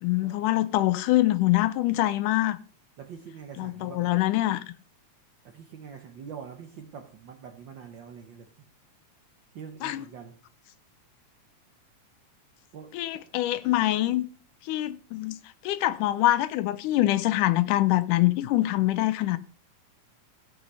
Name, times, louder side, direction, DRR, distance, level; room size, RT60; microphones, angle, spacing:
voice 1, 0.0-2.6 3.6-4.6 9.8-10.0 12.9-14.3 14.6-15.4 15.6-19.4, left 15 dB, 90° left, 2.2 m, -24 dB
voice 2, 3.0-4.1 5.4-8.5 9.5-10.4 12.7-13.2, right 7 dB, 80° right, 1.0 m, -44 dB
14.5 x 6.3 x 5.4 m
omnidirectional pair, 3.6 m